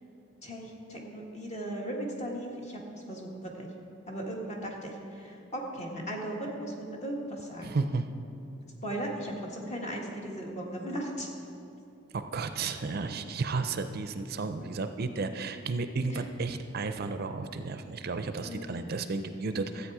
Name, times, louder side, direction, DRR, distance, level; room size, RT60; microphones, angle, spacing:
voice 1, 0.4-2.8 3.1-3.7 4.1-7.7 8.8-11.3 16.1-16.3 18.4-18.8, right 1 dB, 35° left, -1 dB, 1.6 m, -37 dB
voice 2, 7.6-8.1 12.1-19.9, right 4 dB, 50° right, 9 dB, 0.5 m, -33 dB
13.5 x 8.1 x 4.8 m, 2.7 s
head